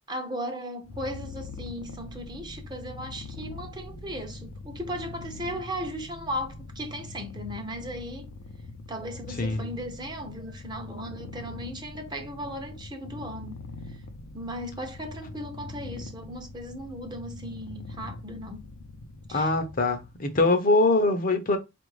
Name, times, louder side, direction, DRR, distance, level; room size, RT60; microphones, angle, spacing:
voice 1, 0.1-8.3 8.9-14.0 14.3-18.7 19.3-19.5, equal, 20° right, 0.7 m, -37 dB
Purr, 0.8-20.2, left 3 dB, 90° left, 0.6 m, -42 dB
voice 2, 9.4-9.7 19.3-21.6, left 2 dB, 45° left, 0.6 m, -23 dB
4.4 x 2.5 x 3.1 m
head